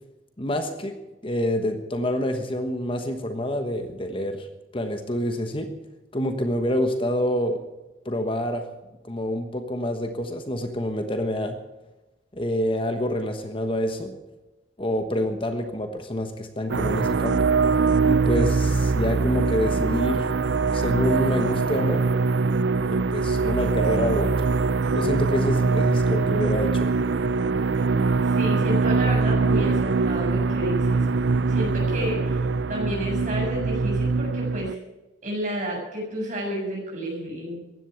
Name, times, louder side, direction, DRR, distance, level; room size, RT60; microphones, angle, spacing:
voice 1, 0.4-1.0 1.2-4.5 4.7-5.7 6.1-7.6 8.0-8.7 9.0-11.6 12.3-14.1 14.8-17.5 18.0-20.3 20.7-22.1 22.8-24.3 24.9-26.9, left 1 dB, 30° left, 7 dB, 1.2 m, -27 dB
sound 1, 16.7-34.7, right 4 dB, 75° right, 0.5 m, -23 dB
voice 2, 28.2-31.1 31.5-32.4 32.7-34.8 35.2-37.6, equal, 45° right, -2 dB, 7.2 m, -31 dB
15.5 x 11.0 x 8.1 m, 1.1 s
head